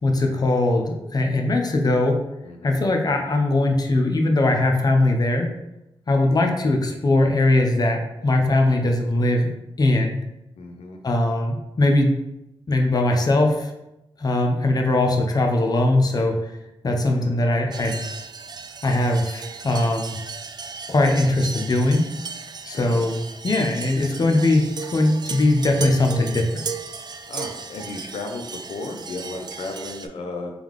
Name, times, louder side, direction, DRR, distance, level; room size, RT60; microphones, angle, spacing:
voice 1, 0.0-2.2 2.6-5.5 6.1-9.5 9.8-10.2 11.0-12.2 12.7-13.7 14.2-16.5 16.8-18.0 18.8-20.2 20.9-22.0 22.7-23.2 23.4-26.6, left 2 dB, 40° left, 2 dB, 0.7 m, -20 dB
voice 2, 10.6-11.0 17.1-17.4 22.6-23.0 27.3-30.5, left 3 dB, 85° left, 3 dB, 0.5 m, -34 dB
sound 1, 17.7-30.1, right 5 dB, 45° right, 0.4 m, -35 dB
3.7 x 3.4 x 3.1 m, 0.91 s
cardioid pair, 75°, 10 cm